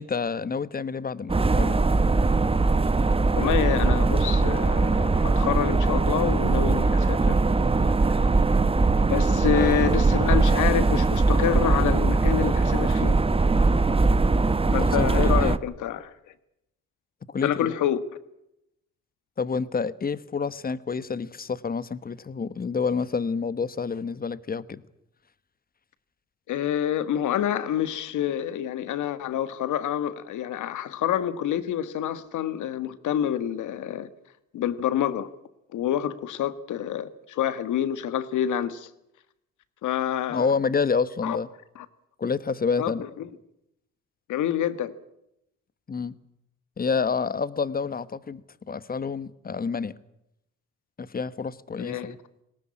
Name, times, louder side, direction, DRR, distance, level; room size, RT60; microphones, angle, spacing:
voice 1, 0.0-1.8 9.5-9.9 14.7-15.6 17.3-17.7 19.4-24.8 40.3-41.5 42.2-43.0 45.9-46.1 46.8-48.4 48.7-49.9 51.0-52.2, left 5 dB, 30° left, 1.2 m, -28 dB
sound 1, 1.3-15.6, right 3 dB, 20° right, 1.0 m, -21 dB
voice 2, 3.3-7.4 9.0-13.2 14.7-16.1 17.4-18.0 26.5-34.1 34.5-35.3 35.7-38.9 39.8-40.5 41.2-41.4 41.7-41.8 42.8-43.3 44.3-44.9 51.8-52.1, left 10 dB, 80° left, 1.7 m, -27 dB
20.0 x 18.0 x 9.9 m
cardioid pair, 90°, 30 cm